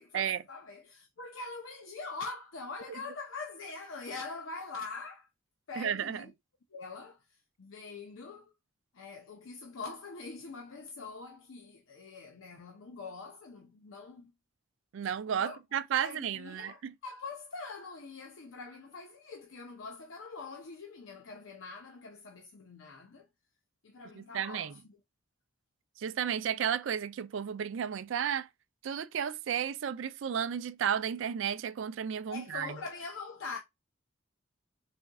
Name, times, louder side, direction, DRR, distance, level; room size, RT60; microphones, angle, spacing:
voice 1, 0.0-5.3 5.7-6.3 6.7-8.5 8.9-14.3 15.3-15.6 16.0-23.3 23.8-25.0 32.3-33.6, left 4 dB, 85° left, 0.6 m, -44 dB
voice 2, 5.8-6.2 14.9-16.9 24.1-24.7 26.0-28.5 28.8-32.7, right 8 dB, 70° right, 0.4 m, -33 dB
4.2 x 3.5 x 2.3 m
head